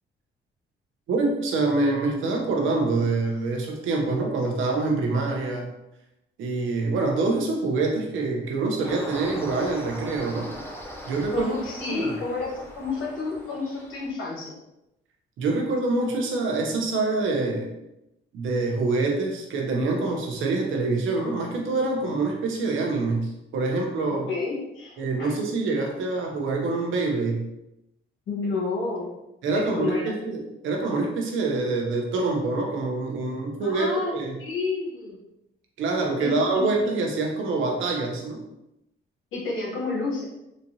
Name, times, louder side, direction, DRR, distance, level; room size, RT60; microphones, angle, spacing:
voice 1, 1.1-5.7 6.4-10.5 11.1-11.5 11.9-12.1 15.4-17.7 18.3-24.3 25.0-27.5 29.4-34.4 35.8-38.4, right 3 dB, 80° right, 1 dB, 0.9 m, -25 dB
sound 1, 8.8-14.1, equal, 10° left, 0.7 m, -40 dB
voice 2, 11.3-14.6 24.1-25.3 28.3-29.1 29.5-30.1 33.6-34.1 34.4-35.2 36.2-36.9 39.3-40.2, left 3 dB, 80° left, -5 dB, 1.3 m, -30 dB
4.2 x 2.5 x 2.8 m, 0.88 s
cardioid pair, 90°, 20 cm